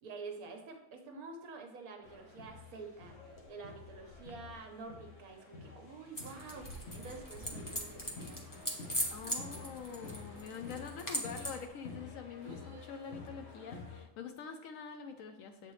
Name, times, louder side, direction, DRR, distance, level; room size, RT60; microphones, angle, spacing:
voice 1, 0.0-8.5 12.4-13.2, right 4 dB, 70° right, 4 dB, 1.4 m, -48 dB
sound 1, 2.0-14.0, left 3 dB, 50° left, 1.1 m, -50 dB
sound 2, 6.2-11.7, equal, 20° left, 0.5 m, -40 dB
voice 2, 9.1-15.7, left 6 dB, 70° left, 7 dB, 0.9 m, -45 dB
7.5 x 4.4 x 3.1 m, 0.87 s
omnidirectional pair, 1.6 m